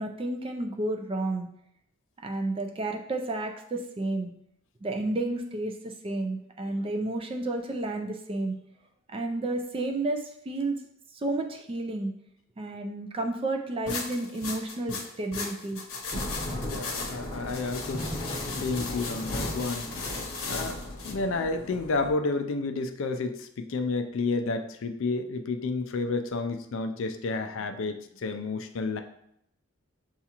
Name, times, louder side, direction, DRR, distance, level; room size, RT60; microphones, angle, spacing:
voice 1, 0.0-1.5 2.2-4.3 4.8-8.5 9.1-10.8 11.1-12.1 12.6-15.8, right 2 dB, 25° right, 4 dB, 0.3 m, -31 dB
sound 1, 13.9-21.1, left 4 dB, 75° left, 0.8 m, -37 dB
Thunder / Rain, 16.1-22.1, left 1 dB, 30° left, 0.8 m, -36 dB
voice 2, 16.7-18.2 18.5-29.0, left 3 dB, 60° left, 6 dB, 0.4 m, -31 dB
6.8 x 2.4 x 2.8 m, 0.75 s
head